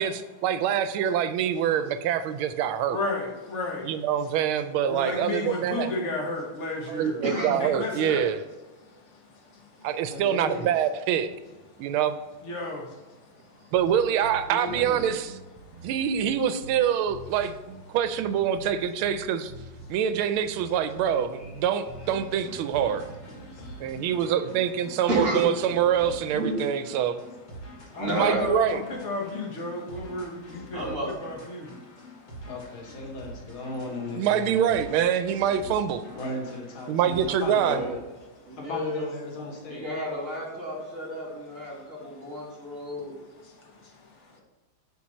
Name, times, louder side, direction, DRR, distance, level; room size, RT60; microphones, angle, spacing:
voice 1, 0.0-3.0 3.8-5.9 6.9-8.4 9.8-11.3 11.8-12.2 13.7-15.3 15.8-17.5 17.9-19.5 19.9-23.1 23.8-27.2 28.1-28.8 34.2-36.0 36.9-37.8, right 9 dB, 90° right, 11 dB, 1.4 m, -25 dB
voice 2, 2.9-4.0 4.8-8.3 8.8-9.9 11.7-11.9 12.4-13.7 15.6-15.9 19.8-19.9 23.4-24.1 27.6-32.5 38.3-38.6 41.6-44.4, left 2 dB, 40° left, 0 dB, 1.2 m, -35 dB
voice 3, 7.2-7.6 21.4-21.5 23.5-24.1 25.1-25.5 26.3-26.7 27.9-28.4 30.7-31.1 37.5-37.9 38.4-39.0 39.7-43.1, equal, 40° right, -3 dB, 3.0 m, -31 dB
voice 4, 10.1-10.7 14.5-15.1 32.5-34.7 36.1-38.0 38.7-39.8, left 2 dB, 80° left, -1 dB, 2.4 m, -36 dB
sound 1, 13.8-23.3, right 1 dB, 65° right, 1.8 m, -45 dB
sound 2, 22.0-38.1, equal, 60° left, 2.4 m, -46 dB
9.2 x 4.5 x 4.2 m, 1.2 s
omnidirectional pair, 2.3 m